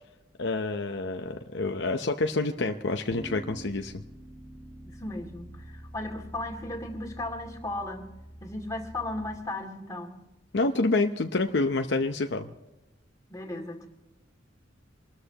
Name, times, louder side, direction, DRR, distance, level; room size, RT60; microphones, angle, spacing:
voice 1, 0.4-3.9 10.5-12.5, left 3 dB, 60° left, 5 dB, 0.8 m, -28 dB
sound 1, 3.1-9.4, right 1 dB, 10° right, 1.4 m, -46 dB
voice 2, 4.8-8.1 8.4-10.2 13.3-13.9, left 2 dB, 15° left, 0 dB, 2.5 m, -36 dB
25.5 x 13.5 x 3.0 m, 0.99 s
head